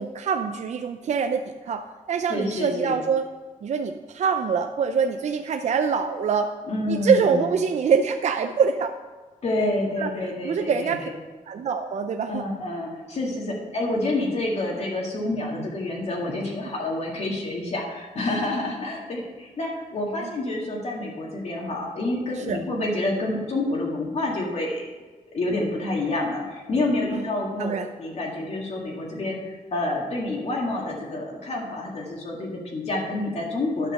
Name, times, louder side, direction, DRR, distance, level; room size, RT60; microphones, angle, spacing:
voice 1, 0.0-3.3 3.6-6.5 6.9-8.9 10.0-10.1 10.4-11.0 11.5-12.4 13.4-13.6 20.2-20.3 22.5-22.6 27.1-27.2 27.6-27.9, right 6 dB, 55° right, 6 dB, 0.5 m, -24 dB
voice 2, 2.3-3.0 6.7-7.5 9.4-11.1 12.3-24.9 25.3-27.7 28.0-33.9, left 2 dB, 50° left, -2 dB, 2.0 m, -28 dB
10.5 x 5.9 x 6.5 m, 1.3 s
cardioid pair, 115°, 14 cm